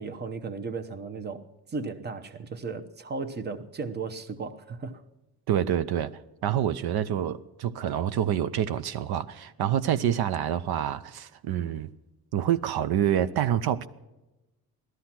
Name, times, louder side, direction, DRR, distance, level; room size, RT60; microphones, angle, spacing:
voice 1, 0.0-5.0, right 4 dB, 25° right, 0.9 m, -35 dB
voice 2, 5.5-6.1 6.4-11.9 12.3-13.9, right 10 dB, 75° right, 0.8 m, -27 dB
17.0 x 13.0 x 5.9 m
cardioid pair, 170°, 38 cm